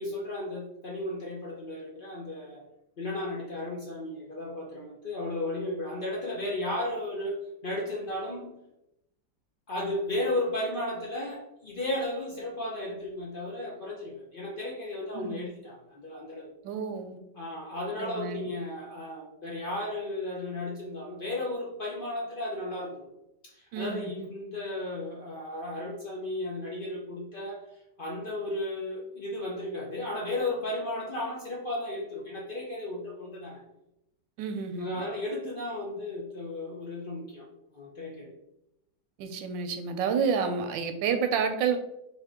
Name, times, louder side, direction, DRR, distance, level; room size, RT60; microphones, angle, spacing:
voice 1, 0.0-2.6 3.0-8.5 9.7-16.5 17.3-23.1 23.4-27.7 28.0-33.6 34.8-37.5 37.7-38.3, left 1 dB, 80° left, -3 dB, 0.4 m, -34 dB
voice 2, 15.1-15.5 16.6-17.2 18.0-18.5 23.7-24.3 34.4-35.1 39.2-41.8, right 6 dB, 85° right, 7 dB, 1.3 m, -30 dB
3.7 x 3.6 x 3.5 m, 0.84 s
omnidirectional pair, 2.0 m